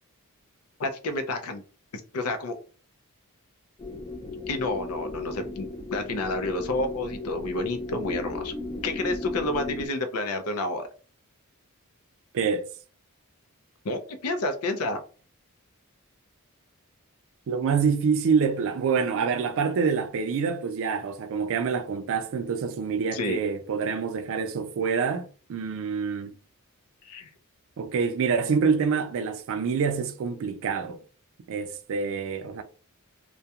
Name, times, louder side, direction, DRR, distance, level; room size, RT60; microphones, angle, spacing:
voice 1, 0.8-1.6 2.1-2.6 4.5-8.5 8.8-10.9 13.8-15.0 23.1-23.4 27.0-27.3, left 2 dB, 75° left, 0.5 m, -30 dB
sound 1, 3.8-9.9, left 3 dB, 20° left, 0.4 m, -35 dB
voice 2, 12.3-12.7 17.5-26.3 27.8-31.0 31.5-32.6, right 5 dB, 60° right, 0.3 m, -26 dB
2.3 x 2.1 x 2.7 m
head